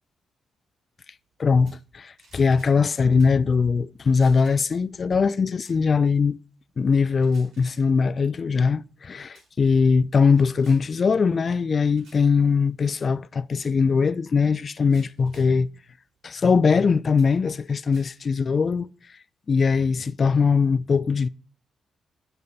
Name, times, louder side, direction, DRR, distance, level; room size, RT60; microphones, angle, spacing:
voice 1, 1.4-6.4 6.8-15.7 16.2-18.9 19.5-21.3, left 5 dB, 35° left, 0.3 m, -21 dB
sound 1, 1.7-1.9 2.2-2.8 3.2-3.4 4.1-4.7 5.6-5.8 7.1-7.8 8.7-9.0 9.3-9.5 10.0-10.9 11.9-12.3 13.6-13.8 14.6-15.6 16.4-16.5 17.2-18.3, right 3 dB, 85° right, 5.3 m, -56 dB
9.8 x 6.6 x 4.0 m
cardioid pair, 155°, 0 cm